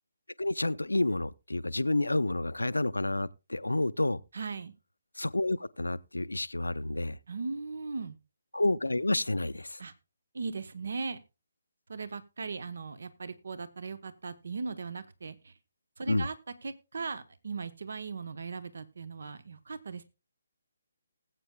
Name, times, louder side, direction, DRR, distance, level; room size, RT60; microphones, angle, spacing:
voice 1, 0.4-4.2 5.2-7.2 8.5-9.8 16.1-16.3, left 2 dB, 80° left, 0.5 m, -29 dB
voice 2, 4.3-4.7 7.3-8.2 9.8-9.9 10.3-11.2 11.9-15.5 16.0-16.3 16.6-20.0, right 4 dB, 60° right, 0.8 m, -38 dB
19.5 x 8.3 x 2.2 m
figure-of-eight pair, 140°, 0 cm